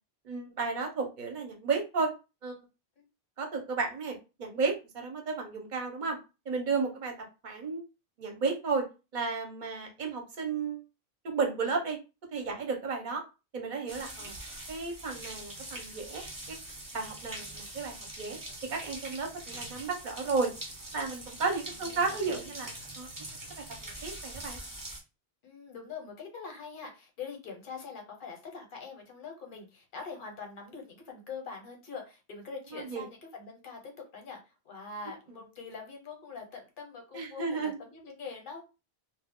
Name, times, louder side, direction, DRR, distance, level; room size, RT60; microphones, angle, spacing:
voice 1, 0.2-2.1 2.4-2.6 3.4-6.2 6.5-7.1 7.4-7.8 8.2-8.8 9.1-10.8 11.2-12.0 12.3-13.2 13.5-14.3 14.7-16.6 16.9-18.4 18.7-20.5 20.9-23.1 23.8-24.6 32.7-33.0 37.1-37.8, right 4 dB, 50° right, 3 dB, 0.8 m, -33 dB
sound 1, 13.9-25.0, right 1 dB, 20° right, 0.7 m, -43 dB
voice 2, 21.7-22.5 25.4-38.6, left 5 dB, 55° left, 2 dB, 1.0 m, -44 dB
2.2 x 2.1 x 3.5 m, 0.29 s
omnidirectional pair, 1.1 m